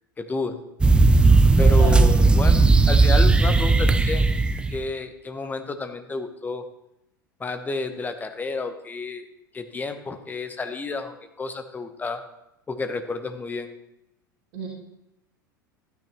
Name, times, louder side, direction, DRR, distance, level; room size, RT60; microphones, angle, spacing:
voice 1, 0.2-0.6 1.6-4.3 4.7-6.6 7.4-9.2 9.5-12.2 12.7-13.7, left 3 dB, 15° left, 8 dB, 0.9 m, -30 dB
sound 1, 0.8-4.8, right 3 dB, 10° right, 0.5 m, -16 dB
voice 2, 1.6-2.0 14.5-14.7, right 3 dB, 50° right, -3 dB, 2.2 m, -31 dB
13.0 x 9.2 x 3.0 m, 0.87 s
figure-of-eight pair, 80°, 11 cm